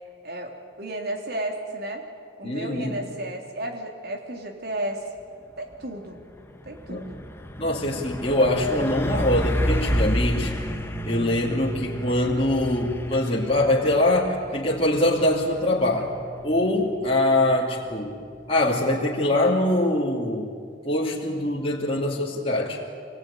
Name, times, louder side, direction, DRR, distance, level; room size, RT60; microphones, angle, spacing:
voice 1, 0.2-2.1 2.4-5.1 5.6-6.2 6.7-7.2, right 1 dB, 55° right, 3 dB, 3.4 m, -33 dB
voice 2, 2.4-3.0 6.9-7.0 7.6-10.5 11.0-16.1 16.4-18.2 18.5-20.5 20.8-22.8, left 1 dB, 30° left, -5 dB, 2.8 m, -23 dB
Truck, 5.6-5.8 6.2-18.7, equal, 15° left, 1.2 m, -31 dB
25.0 x 19.5 x 9.9 m, 2.2 s
head